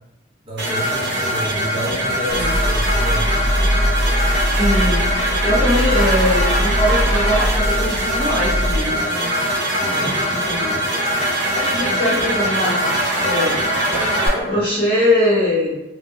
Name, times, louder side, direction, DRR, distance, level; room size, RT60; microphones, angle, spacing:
voice 1, 0.5-3.4 9.9-10.2 13.9-14.6, right 1 dB, 30° right, -4 dB, 0.6 m, -29 dB
sound 1, 0.6-14.3, equal, 70° right, 0.8 m, -21 dB
sound 2, 2.3-8.8, equal, 85° left, 0.6 m, -21 dB
voice 2, 4.6-5.0 5.4-9.3 9.8-10.8 11.5-13.6 14.5-15.8, left 1 dB, 30° left, -13 dB, 0.9 m, -21 dB
2.4 x 2.1 x 3.6 m, 0.97 s
head